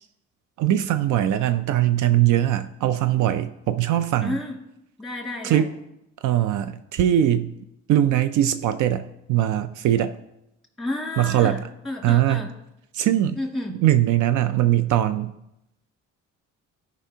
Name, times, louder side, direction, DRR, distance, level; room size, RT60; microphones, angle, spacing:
voice 1, 0.6-4.4 5.4-5.7 6.2-7.5 7.9-10.1 11.2-11.6 12.0-12.4 12.9-13.4 13.8-15.3, right 12 dB, 80° right, 11 dB, 0.5 m, -21 dB
voice 2, 4.2-4.6 5.0-5.7 10.8-12.5 13.4-13.8, left 1 dB, ahead, 0 dB, 2.1 m, -31 dB
13.5 x 5.2 x 2.8 m, 0.85 s
cardioid pair, 90°, 30 cm